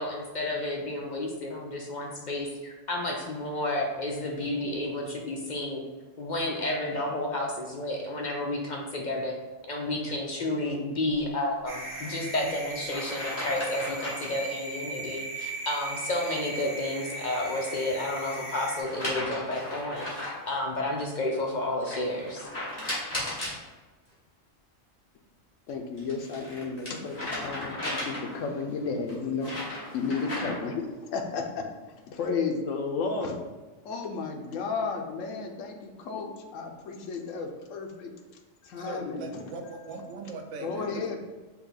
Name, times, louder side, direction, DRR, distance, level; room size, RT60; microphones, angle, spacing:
voice 1, 0.0-5.8 6.2-9.3 9.7-22.5, left 1 dB, 55° left, 0 dB, 0.5 m, -31 dB
sound 1, 11.7-18.8, right 2 dB, 15° right, 1.0 m, -38 dB
sound 2, 11.9-12.1 12.9-14.4 17.2-18.2 18.8-20.5 21.9-23.6 25.7-28.5 29.1-30.7, left 1 dB, 35° left, 1.5 m, -36 dB
voice 2, 25.7-31.6 32.1-33.4 33.8-38.1 38.6-39.4 40.6-41.2, left 4 dB, 80° left, 4 dB, 1.0 m, -33 dB
voice 3, 38.8-41.2, right 3 dB, 70° right, 4 dB, 0.9 m, -40 dB
5.5 x 2.3 x 4.0 m, 1.3 s
omnidirectional pair, 1.3 m